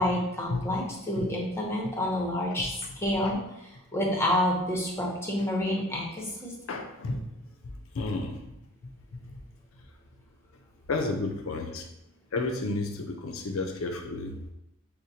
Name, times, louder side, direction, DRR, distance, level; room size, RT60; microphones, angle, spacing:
voice 1, 0.0-3.4 3.9-6.5, left 1 dB, 10° left, -2 dB, 0.8 m, -28 dB
voice 2, 0.5-0.8 1.2-1.3 6.7-7.2 7.6-8.4 9.1-9.4 10.9-11.9 12.3-14.3, left 2 dB, 65° left, 5 dB, 0.5 m, -32 dB
6.4 x 2.2 x 2.8 m, 0.88 s
head